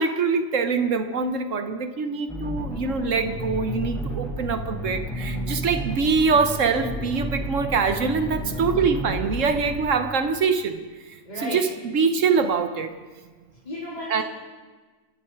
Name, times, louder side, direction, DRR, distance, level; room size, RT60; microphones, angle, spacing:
voice 1, 0.0-10.8 11.4-11.7 11.9-12.9 14.1-14.2, right 5 dB, 65° right, 9 dB, 1.3 m, -24 dB
sound 1, 2.3-9.8, right 1 dB, 5° left, 6.8 m, -32 dB
voice 2, 5.1-5.7 8.3-8.9 11.2-11.6 13.6-14.2, equal, 30° left, -7 dB, 3.7 m, -35 dB
26.0 x 10.5 x 4.7 m, 1.3 s
omnidirectional pair, 1.4 m